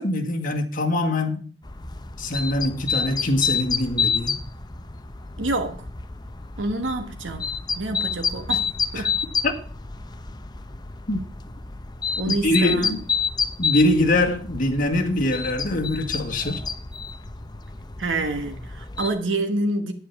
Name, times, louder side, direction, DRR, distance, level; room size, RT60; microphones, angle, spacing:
voice 1, 0.0-1.5 2.2-4.4 9.0-9.1 9.4-9.5 11.1-11.2 12.3-13.1 13.6-16.6, left 1 dB, 45° left, 1.9 m, -23 dB
sound 1, 1.6-19.1, left 5 dB, 20° left, 0.7 m, -29 dB
voice 2, 5.4-5.8 6.6-8.7 8.9-9.1 12.2-12.9 18.0-19.9, right 2 dB, 85° right, 1.3 m, -27 dB
9.6 x 7.6 x 5.9 m
head